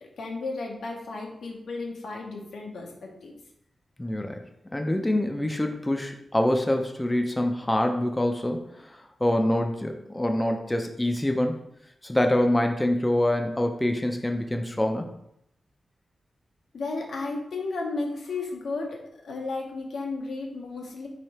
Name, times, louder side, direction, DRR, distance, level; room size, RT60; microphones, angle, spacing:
voice 1, 0.0-3.3 16.7-21.1, left 3 dB, 90° left, 0 dB, 0.8 m, -34 dB
voice 2, 4.0-4.4 4.7-11.6 12.0-15.1, left 1 dB, 15° left, 4 dB, 0.3 m, -25 dB
3.3 x 2.7 x 4.1 m, 0.77 s
wide cardioid pair, 105°, 0 cm